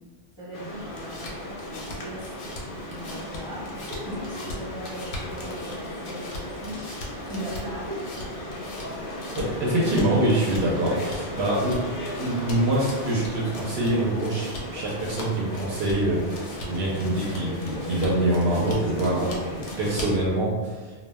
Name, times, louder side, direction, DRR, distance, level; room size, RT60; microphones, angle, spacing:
voice 1, 0.4-6.8 7.3-8.1 11.2-11.3, equal, 5° right, -8 dB, 0.9 m, -39 dB
sound 1, 0.5-20.2, left 1 dB, 55° left, 0.7 m, -36 dB
sound 2, 0.7-20.3, left 1 dB, 85° left, 1.0 m, -41 dB
voice 2, 9.4-11.8 12.2-20.9, right 1 dB, 70° right, -4 dB, 0.8 m, -25 dB
2.2 x 2.1 x 3.2 m, 1.3 s
omnidirectional pair, 1.2 m